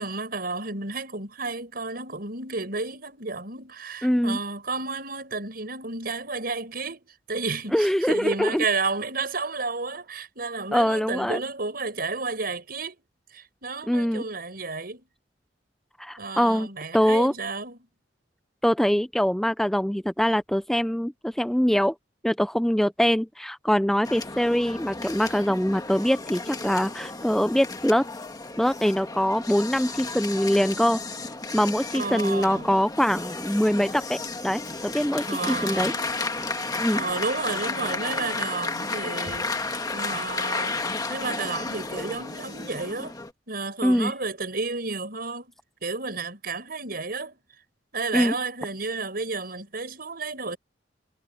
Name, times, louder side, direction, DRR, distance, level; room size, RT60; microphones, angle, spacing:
voice 1, 0.0-12.9 13.3-15.1 16.2-17.8 31.9-32.8 35.3-36.0 36.9-39.5 39.9-40.8 41.1-43.2 43.5-45.5 45.8-47.4 47.9-50.6, right 3 dB, 55° right, 6.7 m, -32 dB
voice 2, 4.0-4.4 7.7-8.6 10.7-11.4 13.9-14.2 16.0-16.7 16.9-17.3 18.6-21.9 22.2-28.0 28.6-31.0 31.5-34.2 34.4-35.9 36.8-37.0 43.8-44.1 48.1-48.3, equal, ahead, 0.4 m, -23 dB
sound 1, 24.0-43.3, left 3 dB, 20° left, 1.6 m, -33 dB
head